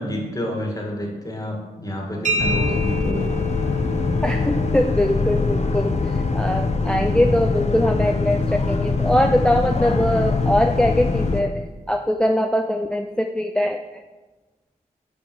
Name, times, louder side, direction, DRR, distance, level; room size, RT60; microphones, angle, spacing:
voice 1, 0.0-3.3 6.8-7.3, equal, 20° left, -1 dB, 1.7 m, -29 dB
sound 1, 2.2-9.8, left 1 dB, 50° right, 1.2 m, -32 dB
Boat Water vehicle, 2.4-11.4, left 3 dB, 45° left, 0.7 m, -23 dB
voice 2, 4.2-5.9 6.3-11.5 11.9-13.8, left 1 dB, 5° left, 5 dB, 0.3 m, -21 dB
7.2 x 4.8 x 3.0 m, 1.2 s
cardioid pair, 40°, 16 cm